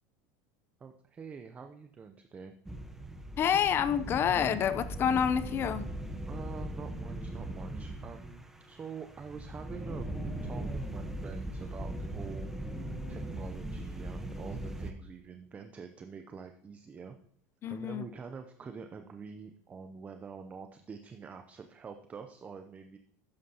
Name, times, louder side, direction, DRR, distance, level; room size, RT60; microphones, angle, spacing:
voice 1, 0.8-2.5 6.3-10.1 10.4-12.5 12.8-17.2 17.7-23.0, right 5 dB, 20° right, 7 dB, 0.6 m, -46 dB
sound 1, 2.6-14.9, right 1 dB, 5° right, 1.0 m, -39 dB
voice 2, 3.4-5.9 17.6-18.0, left 8 dB, 35° left, 14 dB, 0.6 m, -28 dB
12.0 x 9.2 x 2.9 m, 0.66 s
supercardioid pair, 130°, 7 cm